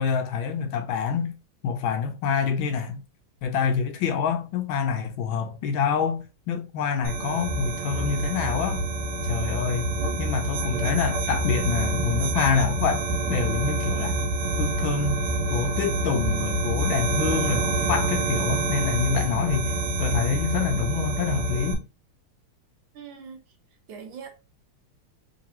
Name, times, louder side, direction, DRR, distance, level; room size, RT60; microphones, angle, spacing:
voice 1, 0.0-1.3 1.6-3.0 3.4-8.8 9.3-9.9 10.2-14.2 14.6-15.2 15.5-21.8, left 6 dB, 75° left, 1.3 m, -26 dB
sound 1, 7.0-21.7, right 2 dB, 85° right, 1.8 m, -27 dB
voice 2, 22.9-23.4 23.9-24.3, right 6 dB, 70° right, 1.6 m, -41 dB
3.7 x 3.3 x 2.9 m
omnidirectional pair, 2.3 m